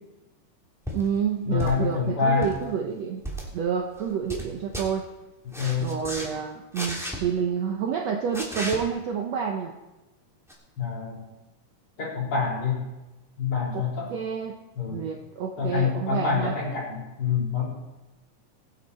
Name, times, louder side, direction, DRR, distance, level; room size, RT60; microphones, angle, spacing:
sound 1, 0.9-1.1 1.6-1.9 2.3-2.6 3.2-3.5 4.0-4.5 4.7-4.9 5.5-6.3 6.7-7.2 8.3-8.8 10.5-10.6, equal, ahead, 2.5 m, -34 dB
voice 1, 0.9-3.2 3.5-5.1 5.8-9.7 13.7-13.8 14.1-16.6, right 7 dB, 65° right, 2 dB, 1.8 m, -29 dB
voice 2, 1.5-2.5 5.4-5.9 10.8-11.3 12.0-12.8 13.4-14.1 14.7-15.1 15.6-17.7, left 5 dB, 40° left, -4 dB, 4.6 m, -26 dB
22.0 x 8.6 x 4.3 m, 1.0 s
omnidirectional pair, 3.8 m